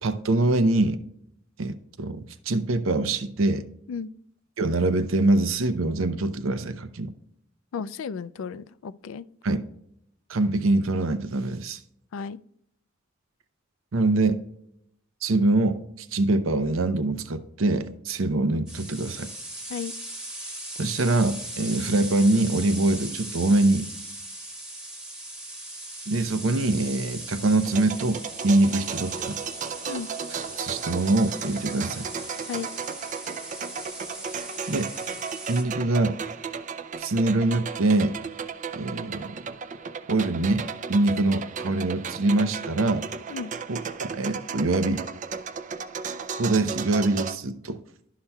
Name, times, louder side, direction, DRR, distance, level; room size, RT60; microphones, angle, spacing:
voice 1, 0.0-1.0 1.6-3.6 4.6-7.1 9.4-9.6 10.3-11.8 13.9-14.4 15.2-19.3 20.8-23.9 26.1-29.4 30.6-32.1 34.7-34.9 35.5-36.2 37.0-38.2 38.8-39.4 40.1-43.1 43.7-45.0 46.4-47.8, right 2 dB, 75° right, 0.6 m, -24 dB
voice 2, 7.7-9.3 12.1-12.4 19.7-19.9 28.6-28.7 29.9-30.1 32.5-32.7 43.3-43.5, left 6 dB, 80° left, 0.4 m, -34 dB
sound 1, 18.7-35.6, right 1 dB, 5° right, 1.2 m, -39 dB
sound 2, 27.7-47.4, right 6 dB, 40° right, 0.4 m, -35 dB
12.0 x 5.6 x 2.3 m
head